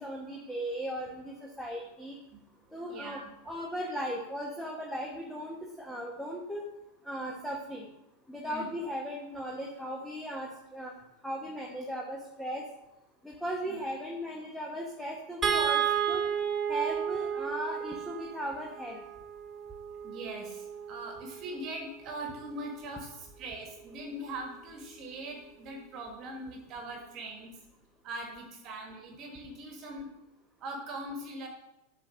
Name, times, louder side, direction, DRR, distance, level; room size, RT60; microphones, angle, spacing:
voice 1, 0.0-2.2 2.7-6.6 7.0-7.9 8.3-10.9 11.2-12.6 13.2-16.2 16.7-19.0, equal, ahead, -1 dB, 1.2 m, -37 dB
voice 2, 2.9-3.3 8.4-8.7 13.7-13.8 20.0-27.6 28.0-30.1 30.6-31.5, right 1 dB, 40° right, 2 dB, 1.5 m, -41 dB
sound 1, 15.4-21.7 23.3-23.4 23.8-24.0, right 8 dB, 20° right, 1.2 m, -33 dB
7.8 x 4.2 x 6.2 m, 0.88 s
figure-of-eight pair, 90°, 0 cm